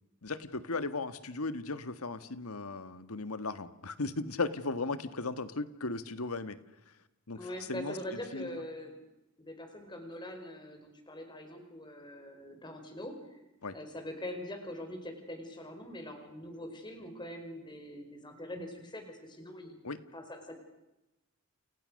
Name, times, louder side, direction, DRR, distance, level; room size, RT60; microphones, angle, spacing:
voice 1, 0.2-6.6 6.9-7.0 7.3-8.0 8.3-8.6 13.6-13.7 19.8-20.0, left 3 dB, 85° left, 12 dB, 1.6 m, -36 dB
voice 2, 7.4-9.0 9.4-13.4 13.7-19.8 20.1-20.5, left 1 dB, 20° left, 5 dB, 5.2 m, -43 dB
29.5 x 29.0 x 6.5 m, 0.97 s
head